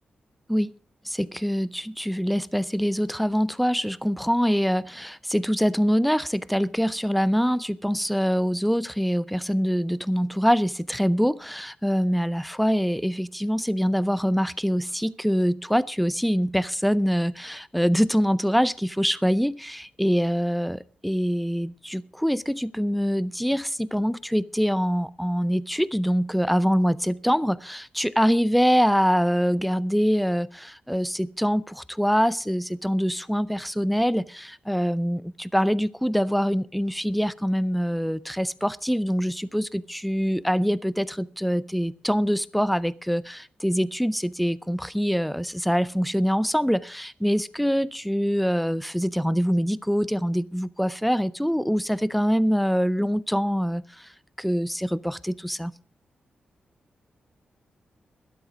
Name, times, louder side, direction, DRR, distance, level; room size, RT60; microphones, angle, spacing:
voice 1, 1.0-54.1 54.4-55.7, equal, ahead, 0.5 m, -24 dB
12.5 x 12.0 x 4.9 m
wide cardioid pair, 120°, 3 cm